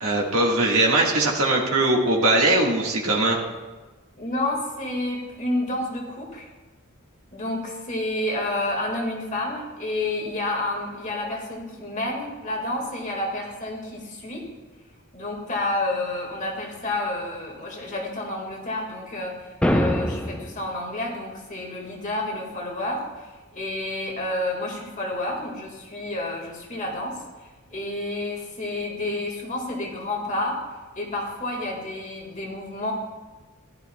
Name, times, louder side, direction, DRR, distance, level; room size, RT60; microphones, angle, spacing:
voice 1, 0.0-3.4, right 2 dB, 90° right, -2 dB, 1.5 m, -20 dB
voice 2, 4.2-6.5 7.3-14.4 15.1-23.0 23.5-30.6 30.9-32.9, left 1 dB, 35° left, 0 dB, 1.7 m, -30 dB
sound 1, 19.6-20.6, equal, 5° left, 0.4 m, -23 dB
15.5 x 11.0 x 2.2 m, 1.2 s
head